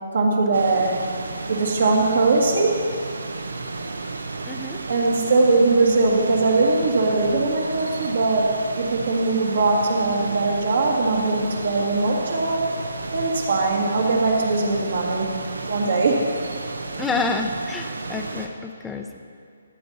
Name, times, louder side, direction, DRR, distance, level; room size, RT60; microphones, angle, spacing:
voice 1, 0.1-1.0 1.5-2.9 4.9-12.7 13.1-15.3 15.7-16.2, right 3 dB, 65° right, -1 dB, 1.7 m, -21 dB
sound 1, 0.5-18.5, right 3 dB, 85° right, 0.8 m, -33 dB
voice 2, 4.5-4.8 17.0-19.2, left 3 dB, 10° left, 4 dB, 0.7 m, -28 dB
13.5 x 8.2 x 4.1 m, 2.4 s
hypercardioid pair, 150°, 0 cm